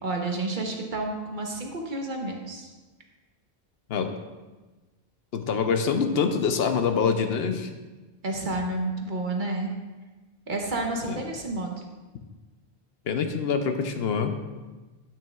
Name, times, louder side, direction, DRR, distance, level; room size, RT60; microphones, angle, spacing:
voice 1, 0.0-2.7 8.2-9.7 10.5-11.7, right 2 dB, 55° right, 1 dB, 1.1 m, -30 dB
voice 2, 5.3-7.7 11.1-11.2 13.1-14.3, left 6 dB, 75° left, 7 dB, 0.9 m, -25 dB
9.1 x 9.0 x 2.3 m, 1.2 s
omnidirectional pair, 1.0 m